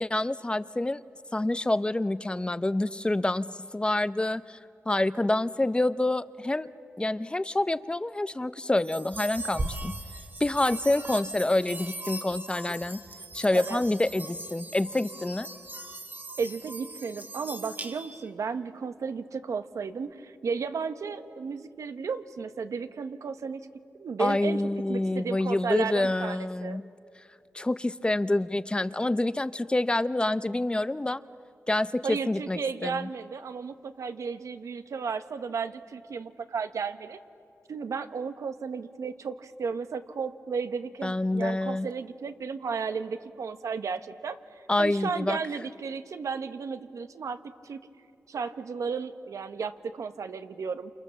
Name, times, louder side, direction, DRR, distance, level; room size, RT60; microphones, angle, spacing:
voice 1, 0.0-1.0 1.3-4.6 4.9-6.7 7.0-9.9 10.4-13.0 13.3-15.5 24.2-26.8 27.5-31.2 31.7-33.1 41.0-41.9 44.7-45.4, left 2 dB, 20° left, 14 dB, 0.7 m, -27 dB
sound 1, 8.8-18.3, right 2 dB, 35° right, 1.7 m, -39 dB
voice 2, 16.4-23.7 24.0-24.6 24.9-26.8 32.0-37.2 37.7-47.4 47.6-47.8 48.3-50.9, right 5 dB, 80° right, 10 dB, 1.2 m, -34 dB
29.0 x 28.5 x 7.2 m, 2.5 s
wide cardioid pair, 80°, 5 cm